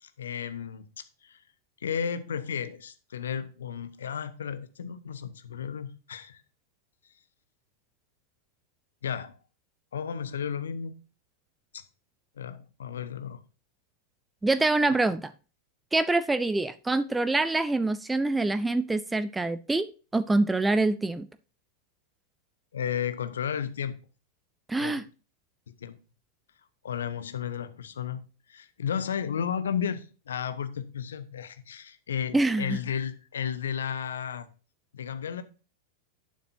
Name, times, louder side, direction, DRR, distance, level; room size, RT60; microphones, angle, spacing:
voice 1, 0.0-1.4 1.8-6.4 9.0-9.4 9.9-10.9 11.7-11.8 12.4-13.4 22.7-24.0 24.8-25.0 25.7-26.0 26.8-28.2 28.5-34.5 34.9-35.4, left 8 dB, 65° left, 1.0 m, -33 dB
voice 2, 14.4-15.3 15.9-21.3 24.7-25.0 32.3-32.8, right 2 dB, 10° right, 0.5 m, -25 dB
11.0 x 9.1 x 2.7 m
figure-of-eight pair, 90°, 0 cm